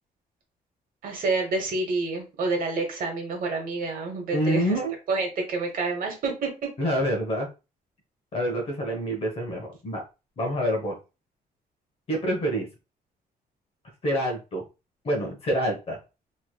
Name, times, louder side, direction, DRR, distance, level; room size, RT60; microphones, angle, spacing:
voice 1, 1.0-4.8 5.1-6.7, right 3 dB, 60° right, 3 dB, 1.2 m, -28 dB
voice 2, 4.3-4.9 6.8-7.5 8.3-10.0 10.4-10.9 12.1-12.7 14.0-14.6 15.0-16.0, equal, 40° left, 1 dB, 0.9 m, -26 dB
3.1 x 3.0 x 2.2 m, 0.29 s
cardioid pair, 155°, 16 cm